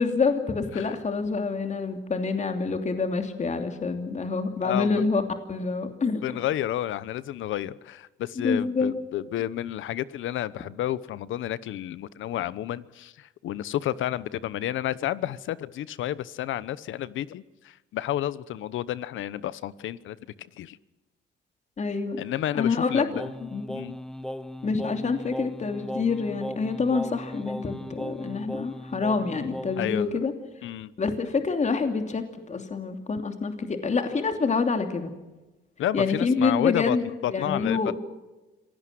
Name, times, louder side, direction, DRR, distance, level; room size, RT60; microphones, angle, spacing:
voice 1, 0.0-5.2 5.5-6.2 8.4-9.0 21.8-22.2 22.5-23.1 23.4-23.7 24.6-30.3 31.0-35.1 35.9-37.9, left 4 dB, 35° left, 6 dB, 2.9 m, -27 dB
voice 2, 4.6-5.0 6.2-20.8 22.2-23.3 23.7-23.9 29.8-30.2 30.6-30.9 35.8-37.9, left 12 dB, 80° left, 18 dB, 1.0 m, -31 dB
Singing, 23.1-30.0, equal, 5° left, 1.1 m, -37 dB
26.5 x 18.0 x 7.7 m, 1.1 s
cardioid pair, 90°, 20 cm